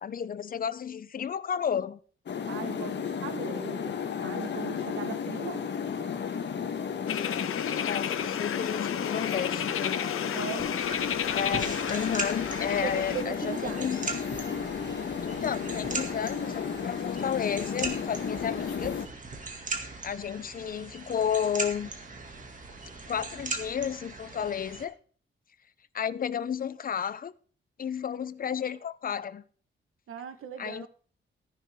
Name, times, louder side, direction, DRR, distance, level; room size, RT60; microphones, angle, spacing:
voice 1, 0.0-2.0 7.8-10.0 11.3-14.0 15.2-19.0 20.0-21.9 23.1-24.9 25.9-27.3 27.8-29.4 30.6-30.9, left 8 dB, 45° left, 0.6 m, -32 dB
sound 1, 2.3-19.1, left 7 dB, 60° left, 1.3 m, -33 dB
voice 2, 2.5-5.7 10.3-10.7 12.8-13.8 30.1-30.9, right 8 dB, 80° right, 1.4 m, -38 dB
sound 2, 7.1-13.2, left 9 dB, 85° left, 1.0 m, -33 dB
sound 3, 10.6-24.8, right 3 dB, 40° right, 2.2 m, -39 dB
15.0 x 10.5 x 3.6 m
wide cardioid pair, 175°, 21 cm